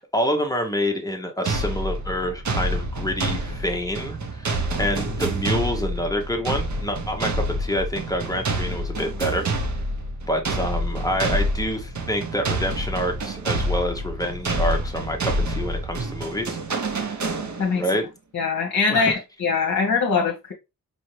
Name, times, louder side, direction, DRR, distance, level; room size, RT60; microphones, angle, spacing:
voice 1, 0.0-9.5 10.3-16.9 17.7-18.0 18.9-19.2, equal, 10° left, 0.8 m, -27 dB
sound 1, 1.5-17.9, right 1 dB, 50° right, 0.8 m, -27 dB
voice 2, 18.3-20.5, left 5 dB, 55° left, 0.9 m, -22 dB
5.3 x 2.7 x 3.0 m
wide cardioid pair, 150°, 36 cm